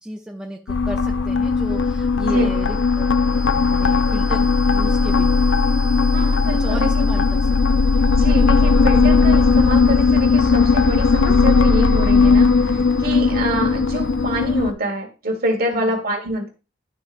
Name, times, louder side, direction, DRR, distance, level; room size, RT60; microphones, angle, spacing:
voice 1, 0.0-5.4 6.5-8.1 15.7-16.0, equal, 5° right, -1 dB, 0.6 m, -34 dB
sound 1, 0.7-14.7, left 4 dB, 60° left, 0.4 m, -17 dB
sound 2, 1.2-14.8, right 1 dB, 25° left, 1.3 m, -37 dB
voice 2, 6.1-6.9 8.1-16.5, right 1 dB, 50° right, 3 dB, 1.6 m, -26 dB
11.5 x 3.9 x 2.6 m, 0.32 s
head